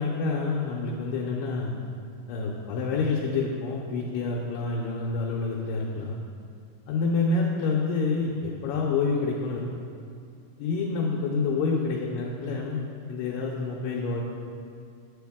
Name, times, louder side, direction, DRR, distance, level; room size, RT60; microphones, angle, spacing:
voice 1, 0.0-1.7 2.3-6.2 6.9-9.7 10.6-14.2, left 4 dB, 80° left, -2 dB, 2.2 m, -28 dB
8.5 x 4.6 x 3.5 m, 2.4 s
omnidirectional pair, 3.9 m